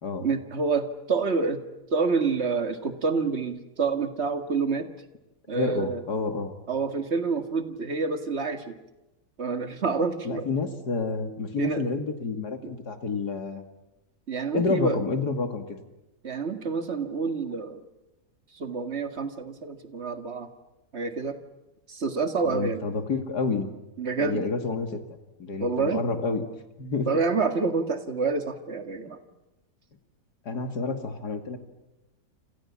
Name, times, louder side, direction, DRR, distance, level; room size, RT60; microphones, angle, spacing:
voice 1, 0.2-1.6 1.9-4.9 5.5-6.0 6.7-8.8 9.4-10.5 11.6-11.8 12.6-12.7 14.3-15.0 16.2-17.8 18.5-20.5 20.9-21.4 21.9-22.8 24.0-24.4 25.6-26.0 27.1-29.2, right 4 dB, 40° right, 8 dB, 2.1 m, -28 dB
voice 2, 5.5-6.5 10.2-13.7 14.5-15.8 22.4-23.7 24.2-26.4 26.8-27.1 30.4-31.6, left 4 dB, 75° left, 7 dB, 3.0 m, -29 dB
29.0 x 27.0 x 7.4 m, 0.99 s
omnidirectional pair, 1.7 m